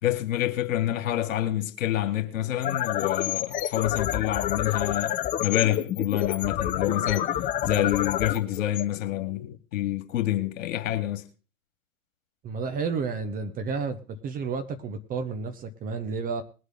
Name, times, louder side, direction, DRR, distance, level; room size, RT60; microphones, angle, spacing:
voice 1, 0.0-7.3 7.6-11.3, left 13 dB, 55° left, 2.3 m, -27 dB
sound 1, 2.5-9.6, left 11 dB, 20° left, 0.7 m, -29 dB
voice 2, 12.4-16.4, right 5 dB, 20° right, 1.0 m, -31 dB
21.0 x 8.1 x 3.8 m
figure-of-eight pair, 115°, 46 cm